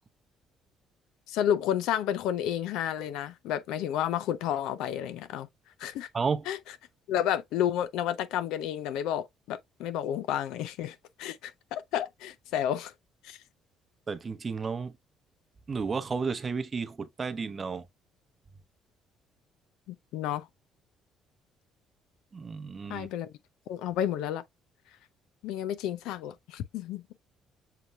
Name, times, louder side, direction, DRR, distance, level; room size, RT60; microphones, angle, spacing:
voice 1, 1.3-5.5 5.8-6.1 6.5-6.6 7.1-12.9 13.2-13.4 19.9-20.5 22.9-23.3 23.7-24.4 25.4-27.0, left 10 dB, 85° left, 0.5 m, -31 dB
voice 2, 6.1-6.5 14.1-14.9 15.7-17.9 22.3-23.1, right 5 dB, 35° right, 0.8 m, -32 dB
6.7 x 3.0 x 2.2 m
cardioid pair, 90°, 0 cm